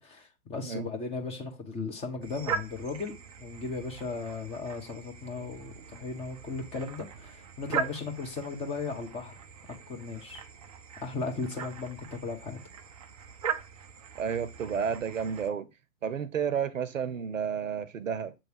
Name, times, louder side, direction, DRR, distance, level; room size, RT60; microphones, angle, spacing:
voice 1, 0.0-9.3 9.9-10.4 11.0-12.6, left 4 dB, 15° left, 1.0 m, -36 dB
sound 1, 2.2-15.5, right 7 dB, 30° right, 0.4 m, -40 dB
voice 2, 14.2-15.7 16.0-18.3, right 7 dB, 65° right, 0.8 m, -31 dB
7.5 x 3.2 x 4.6 m
figure-of-eight pair, 115°, 42 cm